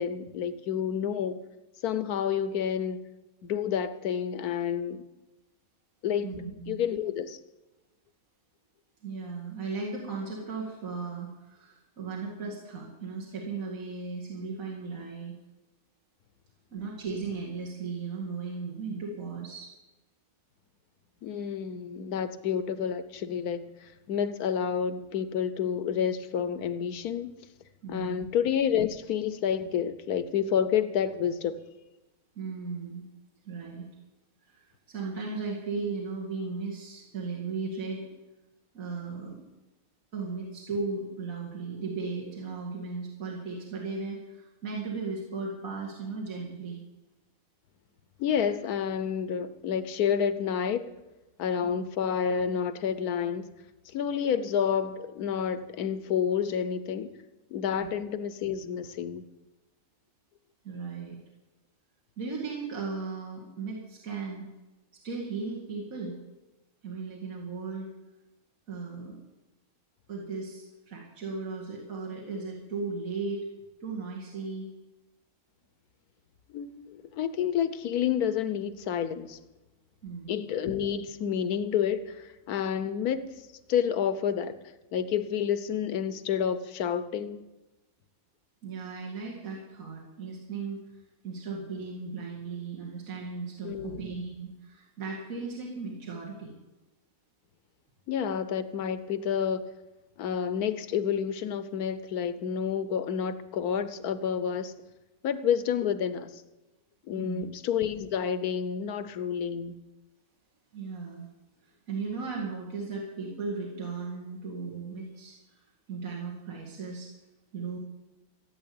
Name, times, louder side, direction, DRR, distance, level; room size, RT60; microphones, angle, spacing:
voice 1, 0.0-1.4 1.8-3.0 3.4-5.0 6.0-6.3 6.7-7.4 21.2-23.7 24.1-27.3 27.9-31.5 48.2-50.8 51.4-53.4 53.9-57.1 57.5-59.2 76.5-79.4 80.3-83.3 83.7-84.5 84.9-87.4 93.6-94.0 98.1-99.6 100.2-104.7 105.2-106.4 107.1-109.8, left 8 dB, 80° left, 13 dB, 1.3 m, -29 dB
voice 2, 6.2-6.8 9.0-15.4 16.7-19.7 27.8-28.2 32.4-33.0 33.5-33.9 34.5-38.1 38.7-39.4 40.1-46.8 51.6-51.7 57.8-57.9 60.6-61.2 62.2-64.5 65.0-66.2 66.8-67.9 68.7-69.2 70.1-73.5 73.8-74.7 80.0-80.3 88.6-90.8 91.2-96.5 107.2-107.4 110.7-111.3 111.9-115.3 115.9-117.1 117.5-117.8, right 4 dB, 65° right, -3 dB, 2.7 m, -36 dB
14.5 x 8.8 x 8.6 m, 1.1 s
omnidirectional pair, 1.6 m